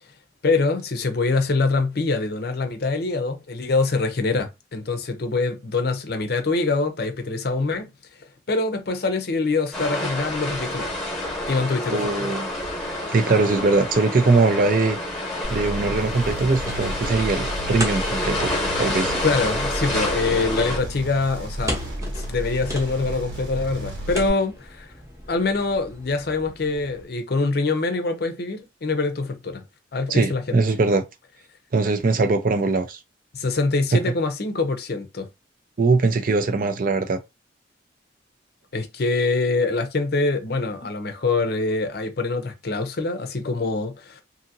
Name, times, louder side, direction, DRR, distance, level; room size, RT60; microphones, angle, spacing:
voice 1, 0.4-7.9 8.5-11.0 11.5-12.3 19.2-24.9 25.3-29.6 29.9-30.6 33.3-35.3 38.7-44.2, left 3 dB, 55° left, 0.6 m, -24 dB
sound 1, 9.7-20.8, left 1 dB, 5° left, 1.0 m, -28 dB
voice 2, 11.9-12.5 12.8-15.0 15.5-18.5 18.8-19.1 30.1-31.0 31.7-33.0 33.9-34.0 35.8-37.2, right 3 dB, 45° right, 0.4 m, -21 dB
sound 2, 15.4-24.3, right 1 dB, 75° right, 1.6 m, -33 dB
sound 3, 16.1-27.1, equal, 15° right, 0.8 m, -38 dB
2.7 x 2.7 x 2.6 m
head